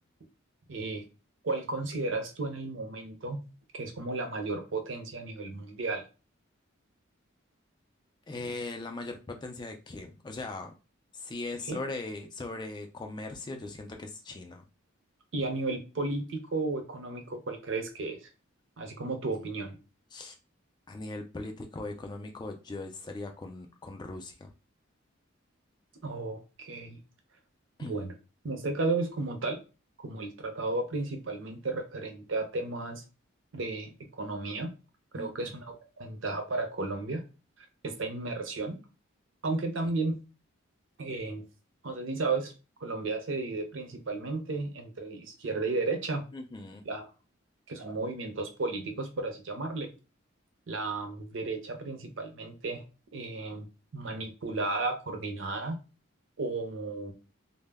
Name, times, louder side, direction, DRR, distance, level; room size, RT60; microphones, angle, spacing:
voice 1, 0.7-1.1 1.4-3.5 3.7-6.1 11.7-11.8 15.3-18.2 18.8-19.8 26.0-27.0 27.8-28.2 28.4-29.6 30.0-33.0 33.5-34.7 35.1-37.2 37.6-38.8 39.4-40.2 41.0-41.5 41.8-42.5 42.8-46.3 46.9-47.1 47.7-49.9 50.7-52.8 53.1-53.7 53.9-55.8 56.4-57.1, right 3 dB, 65° right, 5 dB, 0.6 m, -33 dB
voice 2, 8.3-10.7 11.1-14.6 19.3-19.4 20.1-20.3 20.9-24.5 27.8-28.0 35.2-35.5 46.3-46.8, left 2 dB, 20° left, 4 dB, 0.3 m, -39 dB
2.1 x 2.0 x 3.3 m, 0.31 s
head